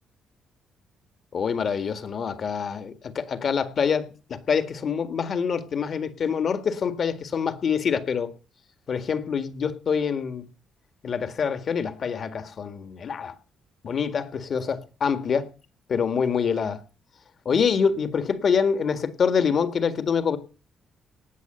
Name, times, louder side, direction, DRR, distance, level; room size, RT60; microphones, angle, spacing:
voice 1, 1.3-8.3 8.9-10.5 11.0-13.3 13.8-15.5 15.9-16.8 17.5-20.4, left 6 dB, 55° left, 1.8 m, -25 dB
18.0 x 6.6 x 7.9 m
cardioid pair, 90°, 0 cm